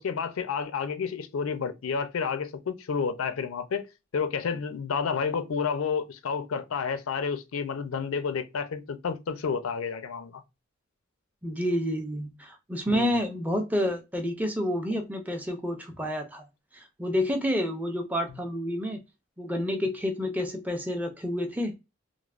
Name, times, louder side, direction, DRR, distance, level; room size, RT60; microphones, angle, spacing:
voice 1, 0.0-10.4 12.9-13.2, left 6 dB, 85° left, 0.4 m, -30 dB
voice 2, 11.4-16.5 16.7-19.0 19.4-21.8, equal, 10° right, 0.4 m, -29 dB
3.1 x 2.0 x 2.4 m
head